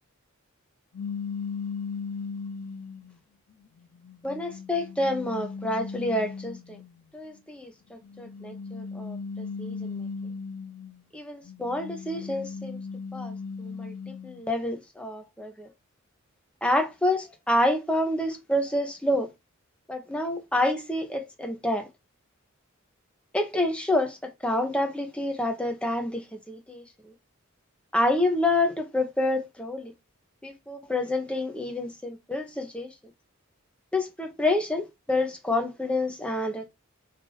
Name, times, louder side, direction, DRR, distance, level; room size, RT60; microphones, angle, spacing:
sound 1, 0.9-3.1 3.8-6.9 8.0-11.0 11.4-14.4, left 5 dB, 85° left, 0.5 m, -37 dB
voice 1, 4.2-6.8 7.1-10.1 11.1-12.8 13.1-15.7 16.6-19.3 19.9-21.9 23.3-27.1 27.9-29.9 30.4-32.9 33.9-36.7, left 1 dB, 5° left, 0.6 m, -28 dB
3.3 x 2.6 x 3.7 m
head